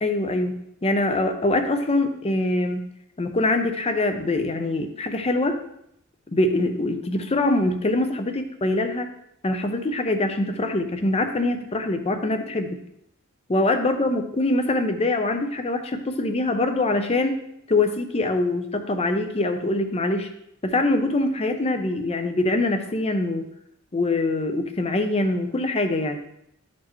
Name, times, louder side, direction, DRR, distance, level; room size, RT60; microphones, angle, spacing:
voice 1, 0.0-2.8 3.2-5.6 6.3-9.1 9.4-12.8 13.5-17.4 17.7-20.3 20.6-23.5 23.9-26.2, left 2 dB, 30° left, 7 dB, 0.6 m, -24 dB
11.5 x 4.3 x 3.1 m, 0.76 s
head